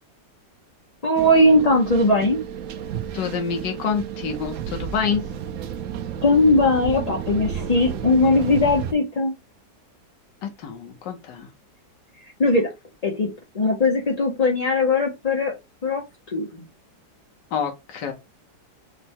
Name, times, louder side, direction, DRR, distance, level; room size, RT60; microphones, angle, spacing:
voice 1, 1.0-2.4 6.2-9.3 12.4-12.7 13.0-13.3 13.5-15.5 15.8-16.0 16.3-16.6, left 2 dB, 45° left, 0.4 m, -19 dB
sound 1, 1.2-8.9, right 8 dB, 80° right, 0.7 m, -32 dB
voice 2, 3.1-5.2 10.4-11.5 17.5-18.1, left 6 dB, 75° left, 1.6 m, -27 dB
5.0 x 2.2 x 4.3 m
omnidirectional pair, 1.9 m